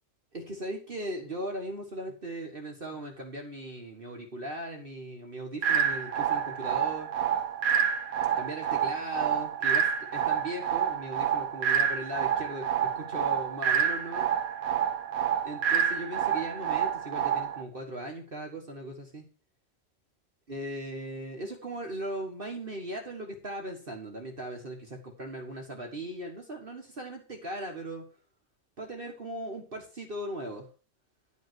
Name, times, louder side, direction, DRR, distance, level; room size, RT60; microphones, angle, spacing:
voice 1, 0.3-7.1 8.4-14.3 15.4-19.2 20.5-28.0 28.8-30.7, right 1 dB, 40° right, 1 dB, 1.6 m, -38 dB
sound 1, 5.6-17.6, right 8 dB, 85° right, 1.3 m, -28 dB
11.0 x 5.4 x 6.1 m, 0.38 s
omnidirectional pair, 1.5 m